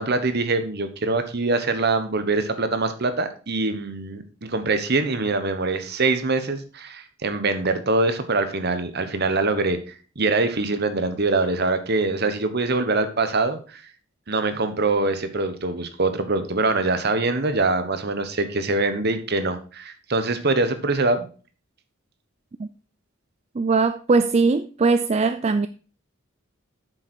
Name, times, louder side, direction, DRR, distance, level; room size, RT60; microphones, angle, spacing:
voice 1, 0.0-9.8 10.2-13.8 14.3-21.3, right 3 dB, 55° right, 1.2 m, -24 dB
voice 2, 23.6-25.7, right 4 dB, 30° right, 0.4 m, -20 dB
8.3 x 6.7 x 4.4 m
head